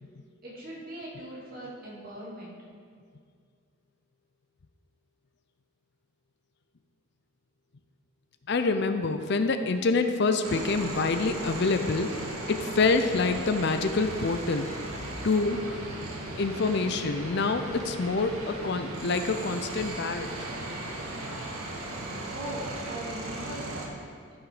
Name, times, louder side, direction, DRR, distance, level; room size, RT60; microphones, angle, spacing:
voice 1, 0.4-2.6 22.3-23.9, right 1 dB, 40° right, -6 dB, 2.7 m, -40 dB
voice 2, 8.5-12.1 12.5-14.7 15.2-15.6 16.4-20.3, left 3 dB, 50° left, 8 dB, 0.5 m, -26 dB
sound 1, 10.4-23.9, right 1 dB, 80° right, 1.7 m, -37 dB
14.0 x 6.3 x 4.9 m, 2.1 s
head